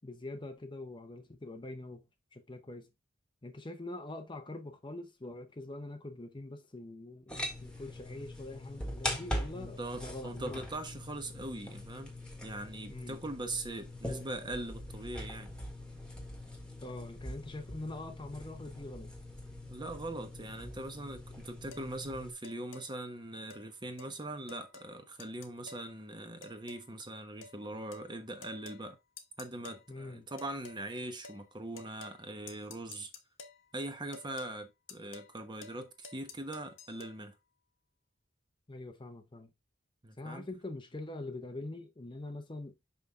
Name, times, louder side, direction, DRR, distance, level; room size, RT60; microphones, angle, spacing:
voice 1, 0.0-2.1 2.3-2.9 3.4-10.6 12.9-13.2 16.8-19.1 29.9-30.3 38.7-39.5 40.2-42.7, left 2 dB, 25° left, 0.7 m, -44 dB
sound 1, 7.3-22.3, left 1 dB, 5° left, 1.5 m, -42 dB
voice 2, 9.5-12.1 12.4-15.5 19.7-29.0 29.4-33.1 33.7-37.3 40.0-40.4, right 1 dB, 20° right, 1.0 m, -41 dB
sound 2, 21.7-21.9 22.4-22.9 23.5-23.6 24.0-24.1 24.5-24.9 25.2-25.9 26.4-26.9 27.4-27.6 27.9-28.1 28.4-28.8 29.2-29.8 30.4-30.8 31.2-31.4 31.8-32.2 32.5-33.6 34.1-34.5 34.9-35.3 35.6-35.8 36.0-37.1, left 4 dB, 65° left, 1.2 m, -50 dB
5.6 x 5.6 x 3.6 m
head